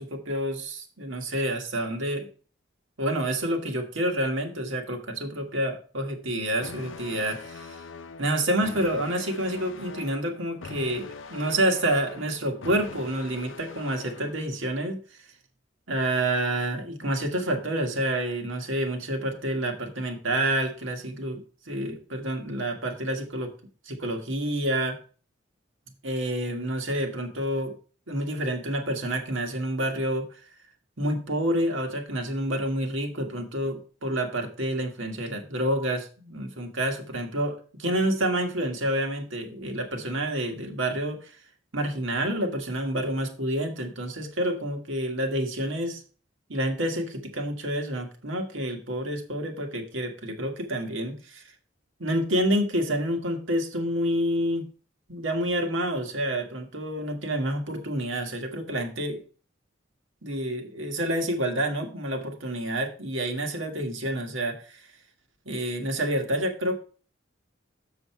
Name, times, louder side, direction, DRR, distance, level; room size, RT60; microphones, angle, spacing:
voice 1, 0.0-2.3 3.0-7.8 8.2-15.0 15.9-23.5 23.9-25.0 26.0-27.8 28.1-30.3 31.0-41.3 41.7-46.0 46.5-51.4 52.0-54.7 55.1-59.2 60.2-64.8 65.5-66.8, right 1 dB, 85° right, 4 dB, 1.7 m, -28 dB
sound 1, 6.6-14.6, left 5 dB, 90° left, 0.7 m, -43 dB
7.1 x 6.6 x 4.5 m, 0.39 s
head